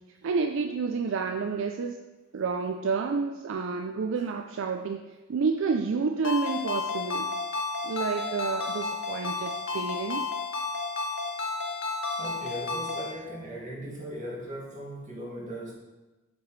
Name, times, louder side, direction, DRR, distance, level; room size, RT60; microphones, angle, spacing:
voice 1, 0.2-2.0 2.3-7.3 7.8-10.3, right 4 dB, 65° right, 5 dB, 0.4 m, -29 dB
Ringtone, 6.2-13.1, left 3 dB, 65° left, 1.0 m, -32 dB
voice 2, 12.2-15.7, right 1 dB, 35° right, -5 dB, 2.1 m, -38 dB
7.4 x 6.1 x 3.2 m, 1.1 s
head